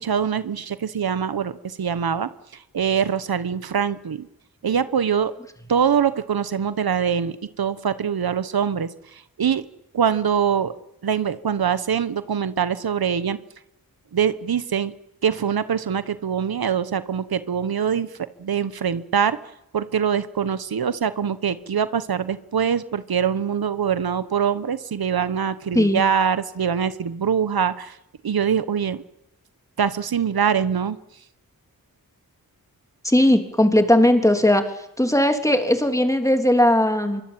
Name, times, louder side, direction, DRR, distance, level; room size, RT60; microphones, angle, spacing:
voice 1, 0.0-2.3 2.7-4.3 4.6-5.3 5.7-8.9 9.4-9.6 9.9-10.7 11.0-13.4 14.1-14.9 15.2-18.1 18.4-19.4 19.7-28.0 28.2-29.0 29.8-31.0, right 7 dB, 90° right, 13 dB, 1.3 m, -23 dB
voice 2, 33.0-34.6 35.0-37.2, left 1 dB, 10° left, 5 dB, 3.4 m, -18 dB
26.0 x 23.5 x 9.0 m, 0.84 s
wide cardioid pair, 120°, 35 cm